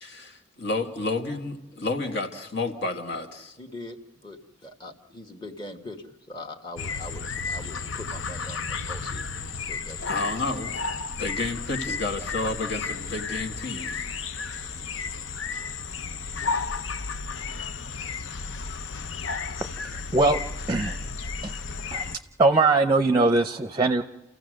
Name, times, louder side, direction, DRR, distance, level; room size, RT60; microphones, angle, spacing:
voice 1, 0.0-3.6 10.1-10.8 11.2-14.1, left 2 dB, 65° left, 5 dB, 1.8 m, -30 dB
voice 2, 3.6-4.0 4.2-9.4 9.7-10.3, left 2 dB, 25° left, 3 dB, 1.4 m, -42 dB
sound 1, 6.8-22.2, left 4 dB, 85° left, 0.7 m, -33 dB
voice 3, 19.5-20.4 20.7-21.1 21.4-21.5 21.9-22.1 22.4-24.0, right 3 dB, 20° right, 8 dB, 0.6 m, -22 dB
29.0 x 15.5 x 6.4 m, 1.0 s
head